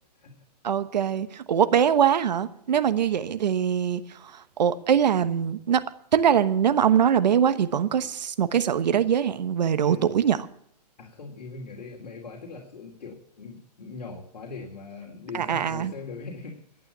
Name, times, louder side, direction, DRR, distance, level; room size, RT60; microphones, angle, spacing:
voice 1, 0.6-5.8 6.1-10.4 15.3-15.9, right 8 dB, 85° right, 1.2 m, -23 dB
voice 2, 11.0-16.6, left 4 dB, 85° left, 3.3 m, -40 dB
12.0 x 9.0 x 9.9 m
hypercardioid pair, 150°, 21 cm